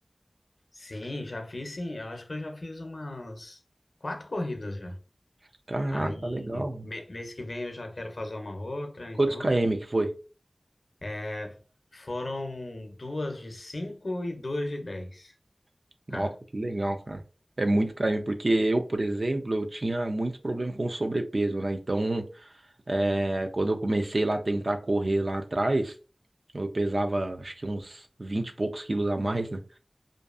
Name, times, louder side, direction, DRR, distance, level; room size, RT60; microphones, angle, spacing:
voice 1, 0.7-3.6 4.0-5.0 5.9-9.6 11.0-11.6 11.9-15.3 16.1-16.3, left 1 dB, 75° left, 0.6 m, -36 dB
voice 2, 5.7-6.9 9.2-10.1 16.1-17.2 17.6-22.5 22.9-25.9 26.5-29.8, right 2 dB, 60° right, 0.4 m, -28 dB
2.5 x 2.3 x 2.4 m
wide cardioid pair, 45°, 0 cm